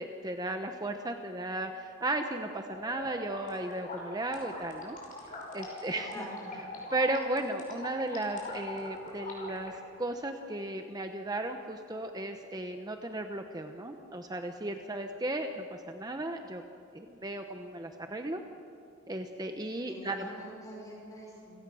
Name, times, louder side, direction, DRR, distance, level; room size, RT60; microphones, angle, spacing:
voice 1, 0.0-5.0 5.5-6.2 6.9-16.6 16.9-18.4 19.1-20.3, right 1 dB, 15° right, 5 dB, 0.9 m, -35 dB
sound 1, 2.7-9.7, left 2 dB, 35° left, 5.8 m, -43 dB
voice 2, 5.9-6.7 19.8-21.6, equal, 15° left, -3 dB, 5.0 m, -45 dB
29.0 x 18.0 x 6.3 m, 2.6 s
head